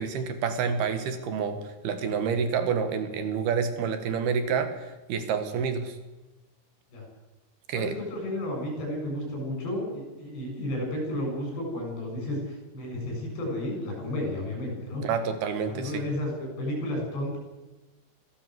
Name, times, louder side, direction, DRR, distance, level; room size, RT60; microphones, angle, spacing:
voice 1, 0.0-6.0 7.7-8.0 15.0-16.0, right 6 dB, 70° right, 9 dB, 3.6 m, -28 dB
voice 2, 7.7-15.0 15.7-17.4, left 1 dB, 80° left, 1 dB, 9.8 m, -32 dB
24.0 x 16.0 x 8.1 m, 1.1 s
omnidirectional pair, 4.7 m